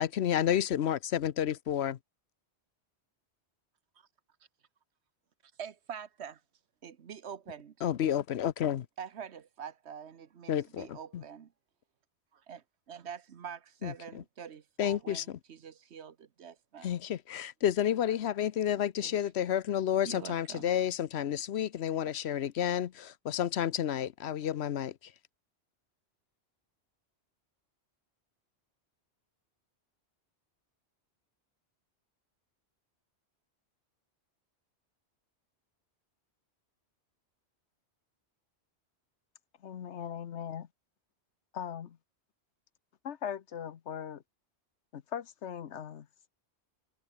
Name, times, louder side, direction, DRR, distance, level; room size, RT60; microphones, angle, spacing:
voice 1, 0.0-2.0 7.8-8.9 10.5-11.2 13.8-14.2 14.8-15.4 16.8-25.1, left 10 dB, 70° left, 1.0 m, -31 dB
voice 2, 5.6-6.4 6.8-7.7 9.0-11.5 12.3-16.9 18.7-19.2 20.0-20.7, right 7 dB, 75° right, 1.3 m, -45 dB
voice 3, 39.6-40.7 41.5-42.0 43.0-44.2 44.9-46.1, left 8 dB, 90° left, 1.2 m, -39 dB
omnidirectional pair, 1.1 m